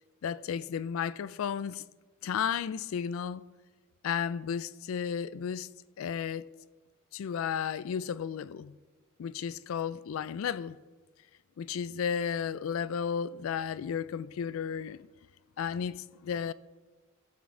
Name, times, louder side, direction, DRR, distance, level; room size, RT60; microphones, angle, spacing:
voice 1, 0.2-1.8 2.2-3.4 4.0-5.7 6.0-6.5 7.1-8.8 9.2-10.8 11.6-15.1 15.6-16.5, left 7 dB, 70° left, 0.3 m, -33 dB
15.0 x 6.1 x 3.7 m
head